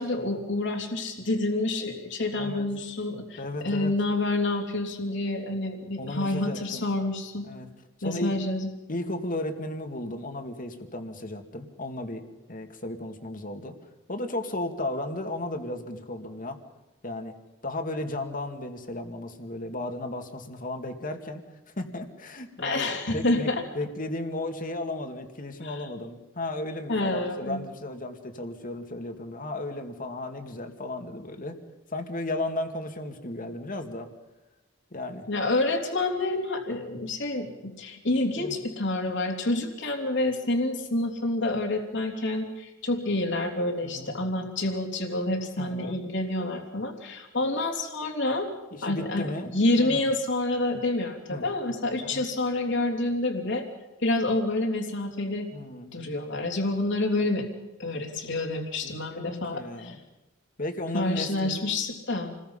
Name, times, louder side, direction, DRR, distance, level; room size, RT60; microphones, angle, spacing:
voice 1, 0.0-7.5 8.0-8.7 22.6-23.6 25.6-25.8 26.9-27.6 35.3-48.5 48.8-49.3 49.5-53.6 54.0-55.5 55.9-57.4 57.8-59.9 60.9-62.4, left 2 dB, 65° left, 2 dB, 3.3 m, -28 dB
voice 2, 2.4-2.7 3.4-3.9 6.0-6.9 7.5-7.7 8.0-8.4 8.9-12.2 12.5-13.7 14.1-16.6 17.0-17.3 17.6-21.4 21.8-31.6 31.9-34.1 34.9-35.3 38.4-38.6 43.8-44.1 45.6-46.0 48.7-50.1 51.3-51.5 52.0-52.2 55.5-56.1 58.8-60.0 60.6-61.6, left 1 dB, 45° left, 5 dB, 2.4 m, -34 dB
28.5 x 21.0 x 5.7 m, 1.1 s
head